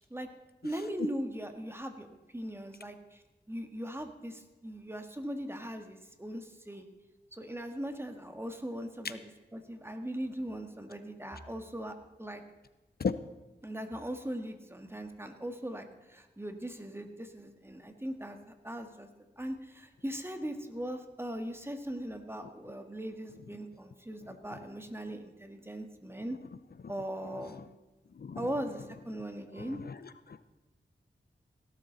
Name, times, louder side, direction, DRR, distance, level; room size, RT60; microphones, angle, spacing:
voice 1, 0.6-3.2 3.5-6.9 7.3-12.4 13.6-19.1 19.4-26.4 26.9-27.6 28.4-29.8, right 1 dB, 15° right, 6 dB, 1.8 m, -39 dB
voice 2, 29.6-30.0 30.3-30.4, left 5 dB, 60° left, 13 dB, 0.6 m, -34 dB
17.5 x 12.0 x 4.0 m, 1.1 s
wide cardioid pair, 60°, 18 cm